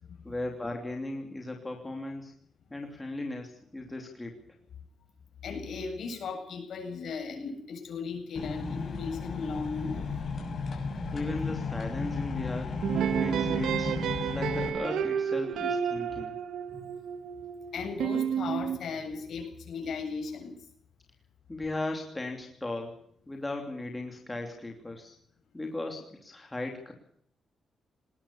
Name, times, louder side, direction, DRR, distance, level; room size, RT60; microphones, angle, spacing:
voice 1, 0.2-2.3 2.7-4.4 11.1-12.7 13.1-13.9 14.3-16.3 21.5-23.0 23.3-25.2 25.5-26.9, left 2 dB, 10° left, 2 dB, 3.0 m, -37 dB
voice 2, 5.4-10.1 10.9-11.0 16.1-16.2 16.7-16.9 17.7-20.6, left 4 dB, 55° left, 4 dB, 7.8 m, -37 dB
sound 1, 8.4-14.7, left 4 dB, 40° left, 6.5 m, -34 dB
sound 2, 12.8-18.8, right 8 dB, 85° right, 1.9 m, -31 dB
20.0 x 20.0 x 6.9 m, 0.66 s
wide cardioid pair, 170°, 0 cm